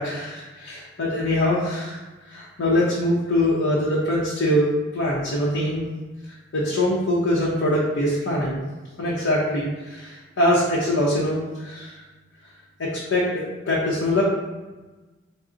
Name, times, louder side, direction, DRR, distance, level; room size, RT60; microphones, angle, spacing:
voice 1, 0.0-2.0 2.3-5.9 6.5-8.6 9.0-11.9 12.8-14.2, left 1 dB, 90° left, -6 dB, 0.7 m, -23 dB
3.6 x 2.0 x 3.8 m, 1.2 s
head